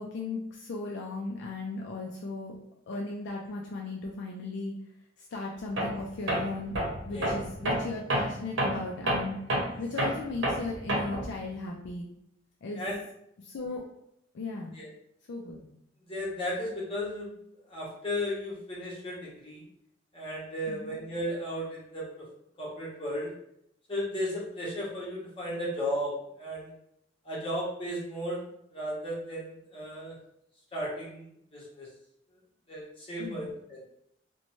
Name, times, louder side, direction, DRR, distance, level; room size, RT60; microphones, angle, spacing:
voice 1, 0.0-2.6 2.9-4.7 5.2-9.4 9.8-12.1 12.6-12.8 13.4-13.8 14.3-14.8 15.3-15.7 20.7-21.0 33.2-33.6, left 3 dB, 65° left, -1 dB, 0.4 m, -36 dB
Tools, 5.8-6.0 6.3-11.3, right 1 dB, 75° right, 0.8 m, -29 dB
voice 2, 16.0-17.3 17.7-19.6 20.1-22.3 22.6-23.3 23.9-26.7 27.2-28.5 28.7-30.1 30.7-31.3 31.5-31.9 32.7-33.8, equal, 30° left, -6 dB, 1.0 m, -35 dB
2.6 x 2.2 x 2.9 m, 0.75 s
head